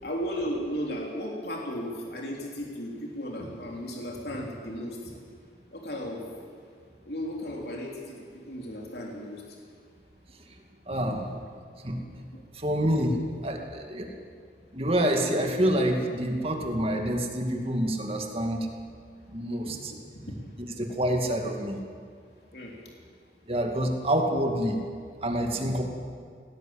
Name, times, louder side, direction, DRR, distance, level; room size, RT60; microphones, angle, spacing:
voice 1, 0.0-5.1 5.7-6.2 7.0-9.4 11.0-11.2 12.3-12.4 19.7-20.4 22.5-22.7, equal, 70° left, -1 dB, 3.3 m, -35 dB
voice 2, 10.9-11.2 11.8-12.0 12.5-14.1 14.7-18.7 19.3-19.9 20.8-21.8 23.5-24.8 25.2-25.8, right 1 dB, 35° right, 2 dB, 2.3 m, -27 dB
18.5 x 17.0 x 8.8 m, 2.1 s
head